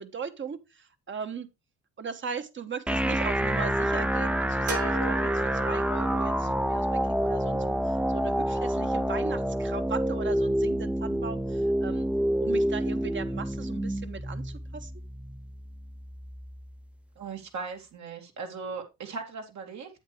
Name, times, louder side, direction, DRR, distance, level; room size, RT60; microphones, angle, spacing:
voice 1, 0.0-1.5 2.0-12.1 12.4-14.9, right 5 dB, 40° right, 1.2 m, -38 dB
sound 1, 2.9-16.8, equal, 5° right, 0.5 m, -28 dB
sound 2, 4.7-6.4, right 3 dB, 85° right, 2.0 m, -36 dB
voice 2, 17.2-19.9, right 5 dB, 70° right, 2.5 m, -38 dB
8.2 x 8.1 x 3.2 m
cardioid pair, 90°, 30 cm